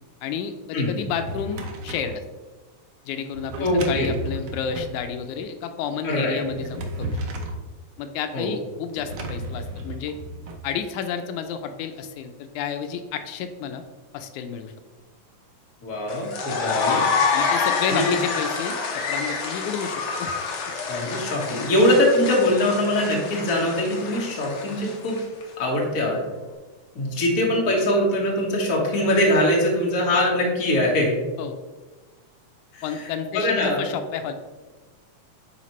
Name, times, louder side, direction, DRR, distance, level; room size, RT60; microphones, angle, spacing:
voice 1, 0.2-2.2 3.1-7.2 8.0-10.2 10.6-13.8 14.1-14.7 17.3-20.3 31.4-31.6 32.8-34.3, left 7 dB, 85° left, 8 dB, 2.0 m, -31 dB
Drawer open or close, 0.9-2.2 3.3-5.0 6.3-7.6 8.9-10.6, right 1 dB, 75° right, 1.2 m, -33 dB
voice 2, 3.6-4.1 6.0-6.4 8.3-8.6 15.8-17.0 17.9-18.1 20.9-25.2 25.6-26.2 26.9-31.1 32.7-33.1 33.3-33.8, left 1 dB, 35° left, -3 dB, 1.5 m, -22 dB
sound 1, 16.1-25.4, left 5 dB, 60° left, 1.5 m, -27 dB
9.7 x 4.2 x 3.1 m, 1.2 s
omnidirectional pair, 3.4 m